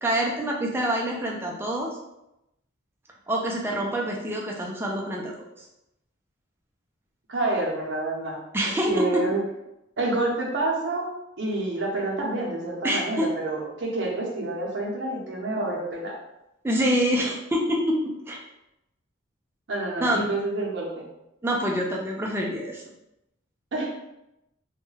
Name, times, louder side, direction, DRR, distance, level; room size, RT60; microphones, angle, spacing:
voice 1, 0.0-2.0 3.3-5.3 8.5-9.2 12.8-13.3 16.6-18.4 20.0-20.2 21.4-22.8, equal, 10° right, -1 dB, 0.3 m, -26 dB
voice 2, 7.3-8.4 8.9-9.4 10.0-11.1 11.4-16.1 19.7-21.1 23.7-23.9, right 2 dB, 60° right, -2 dB, 0.6 m, -28 dB
2.3 x 2.1 x 3.1 m, 0.88 s
head